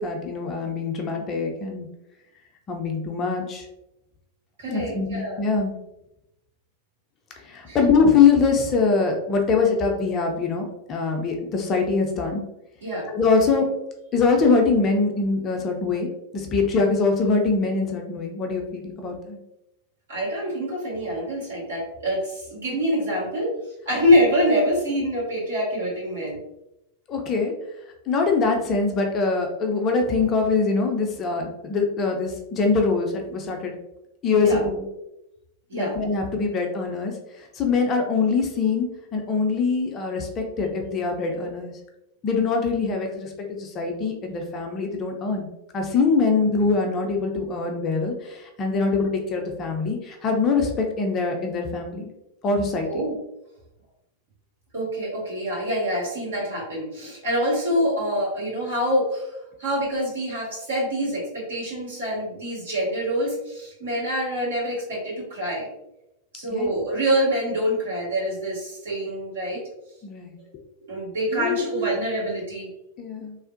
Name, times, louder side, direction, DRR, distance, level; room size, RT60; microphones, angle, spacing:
voice 1, 0.0-1.9 2.7-3.7 4.7-5.8 7.4-12.4 13.1-13.7 14.1-16.1 16.3-19.4 27.1-27.5 28.1-33.8 34.2-34.8 35.7-37.1 37.5-41.7 42.2-45.5 45.7-52.1 52.4-52.9 66.5-66.7 70.0-70.3 71.3-71.7 73.0-73.4, left 4 dB, 30° left, 3 dB, 0.5 m, -23 dB
voice 2, 4.6-5.4 7.7-7.8 12.8-13.1 20.1-23.5 23.8-26.4 34.3-34.6 35.7-36.0 52.8-53.2 54.7-65.7 66.3-69.6 70.9-72.7, equal, 65° right, -6 dB, 1.3 m, -25 dB
3.3 x 2.1 x 2.5 m, 0.88 s
figure-of-eight pair, 90°, 0 cm